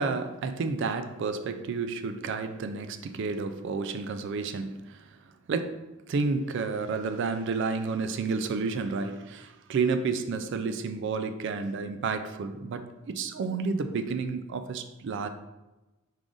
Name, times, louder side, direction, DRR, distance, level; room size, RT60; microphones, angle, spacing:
voice 1, 0.0-5.1 5.5-15.3, right 4 dB, 55° right, 9 dB, 0.3 m, -31 dB
4.8 x 2.5 x 3.7 m, 1.0 s
head